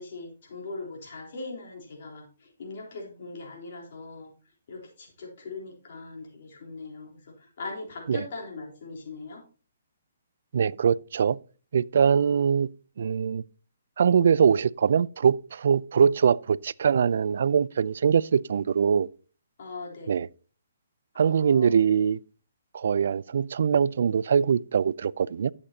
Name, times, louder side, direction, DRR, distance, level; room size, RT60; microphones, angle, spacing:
voice 1, 0.0-4.3 4.7-9.4 12.0-12.4 19.6-20.1 21.1-21.8, left 3 dB, 55° left, 3.8 m, -40 dB
voice 2, 10.5-11.4 11.7-12.7 13.0-13.4 14.0-19.1 20.1-20.3 21.2-22.2 22.7-25.5, right 7 dB, 65° right, 0.3 m, -22 dB
11.0 x 8.2 x 2.8 m
hypercardioid pair, 145°, 0 cm